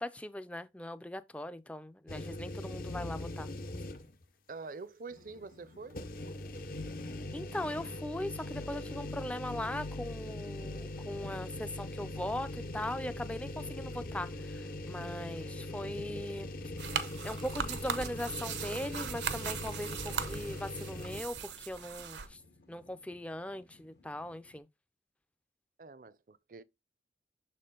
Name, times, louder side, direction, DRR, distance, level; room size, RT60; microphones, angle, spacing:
voice 1, 0.0-3.5 7.3-16.5 17.2-22.4 22.7-24.7, left 1 dB, 5° left, 0.4 m, -39 dB
sound 1, 2.1-4.2 4.7-4.8 5.9-21.2, left 1 dB, 50° left, 0.7 m, -41 dB
voice 2, 4.5-6.0 25.8-26.6, right 4 dB, 50° right, 0.5 m, -46 dB
sound 2, 5.1-24.6, left 2 dB, 70° left, 1.1 m, -62 dB
sound 3, 16.8-22.3, right 6 dB, 85° right, 0.8 m, -39 dB
6.8 x 4.3 x 3.7 m
head